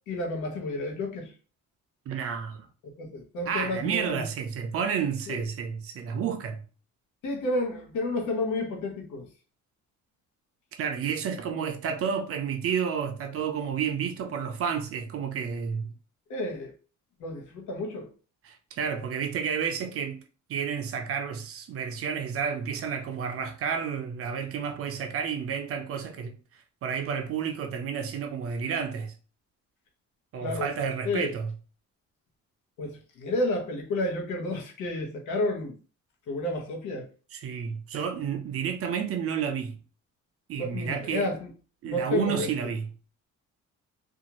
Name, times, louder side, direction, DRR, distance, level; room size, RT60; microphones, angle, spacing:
voice 1, 0.1-1.3 3.0-4.2 5.3-5.4 7.2-9.3 16.3-16.7 17.2-18.1 30.4-30.7 31.0-31.3 32.8-35.8 36.3-37.1 40.6-41.4 41.8-42.5, left 1 dB, 75° left, 1.0 m, -31 dB
voice 2, 2.1-2.7 3.5-6.6 10.7-15.9 18.4-20.2 20.5-26.3 26.8-29.1 30.3-31.5 37.3-39.8 40.5-41.3 41.8-42.9, right 7 dB, 50° right, 0.5 m, -31 dB
2.6 x 2.4 x 2.9 m
cardioid pair, 165°, 30 cm